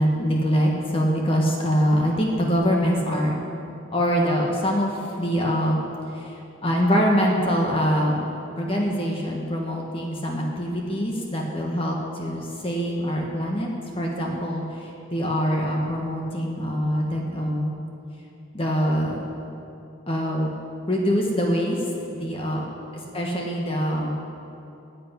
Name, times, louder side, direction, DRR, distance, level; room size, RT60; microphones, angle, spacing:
voice 1, 0.0-3.3 3.9-5.8 6.1-6.3 6.6-8.2 8.6-13.7 14.0-14.6 15.1-17.8 18.5-19.2 20.1-20.5 20.9-21.8 22.1-22.6 23.1-24.2, equal, 25° left, -1 dB, 1.4 m, -24 dB
10.5 x 8.1 x 9.8 m, 2.8 s
head